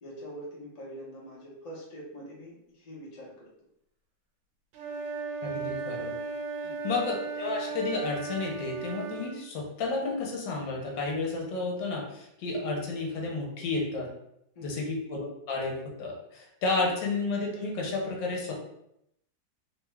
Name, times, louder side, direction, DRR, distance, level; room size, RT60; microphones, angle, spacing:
voice 1, 0.0-3.5 6.6-6.9 14.5-14.9 16.8-16.9, equal, 35° left, -5 dB, 0.6 m, -44 dB
Wind instrument woodwind instrument, 4.7-9.4, right 4 dB, 85° right, 1.4 m, -36 dB
voice 2, 5.4-6.1 6.8-14.1 14.6-18.5, left 3 dB, 75° left, -1 dB, 1.4 m, -31 dB
3.4 x 2.3 x 3.1 m, 0.78 s
omnidirectional pair, 2.0 m